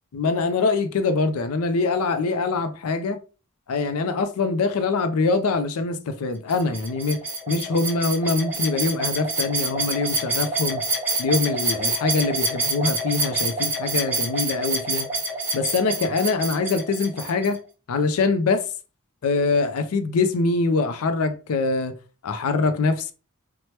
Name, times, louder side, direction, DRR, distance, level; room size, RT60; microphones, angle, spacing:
voice 1, 0.1-3.2 3.7-10.8 11.2-15.1 15.5-17.6 17.9-18.7 19.2-22.0 22.2-23.1, left 3 dB, 75° left, 0.4 m, -24 dB
sound 1, 6.5-17.5, right 2 dB, 10° right, 1.0 m, -27 dB
2.8 x 2.1 x 3.1 m
head